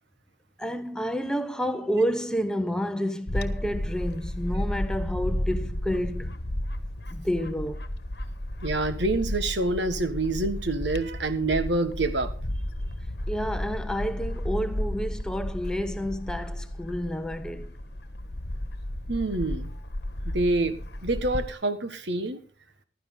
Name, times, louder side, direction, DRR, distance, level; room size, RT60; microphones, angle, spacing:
voice 1, 0.6-6.3 7.1-7.9 13.3-17.8, equal, 5° left, 0.7 m, -30 dB
Bird / Wind, 3.3-21.5, left 1 dB, 55° left, 1.3 m, -33 dB
voice 2, 8.6-12.3 19.1-19.7 20.3-22.4, right 2 dB, 70° right, 1.5 m, -27 dB
15.5 x 12.0 x 3.8 m
head